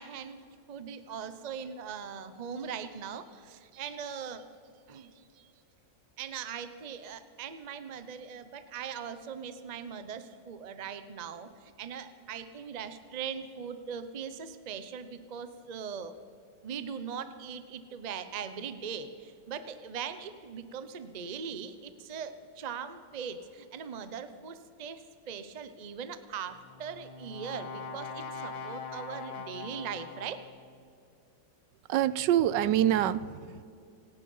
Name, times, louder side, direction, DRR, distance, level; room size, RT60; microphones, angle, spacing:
voice 1, 0.0-4.5 4.9-5.5 6.2-16.1 16.6-30.4, right 7 dB, 45° right, 11 dB, 0.5 m, -40 dB
Brass instrument, 26.5-30.7, left 5 dB, 90° left, 2.1 m, -42 dB
voice 2, 31.9-33.6, right 11 dB, 80° right, 17 dB, 1.2 m, -26 dB
27.0 x 9.3 x 5.5 m, 2.5 s
omnidirectional pair, 1.9 m